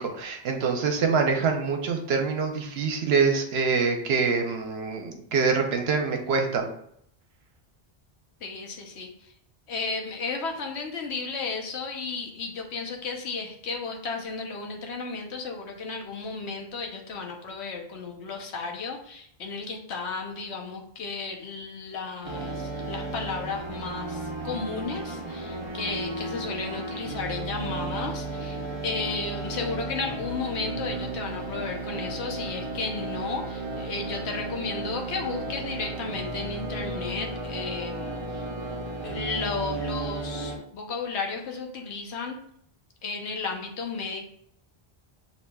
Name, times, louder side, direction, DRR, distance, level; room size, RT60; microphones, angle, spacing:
voice 1, 0.0-6.6, right 5 dB, 75° right, 4 dB, 0.9 m, -25 dB
voice 2, 8.4-9.3 9.7-38.4 39.0-42.4 43.0-44.2, left 4 dB, 85° left, 2 dB, 1.0 m, -34 dB
sound 1, 22.2-40.6, right 2 dB, 30° right, 0.6 m, -34 dB
6.8 x 2.7 x 2.2 m, 0.69 s
omnidirectional pair, 1.1 m